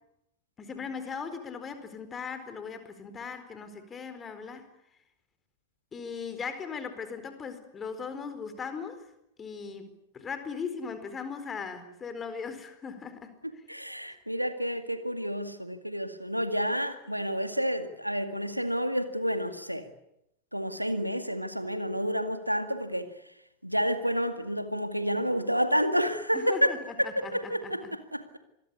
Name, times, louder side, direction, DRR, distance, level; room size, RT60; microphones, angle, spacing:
voice 1, 0.6-4.6 5.9-9.1 9.4-13.6 26.3-27.7, left 5 dB, 20° left, 10 dB, 4.4 m, -38 dB
voice 2, 13.4-19.9 20.5-23.1 23.6-28.4, equal, 90° right, 9 dB, 2.1 m, -30 dB
26.5 x 21.0 x 8.4 m, 0.80 s
figure-of-eight pair, 90°, 0 cm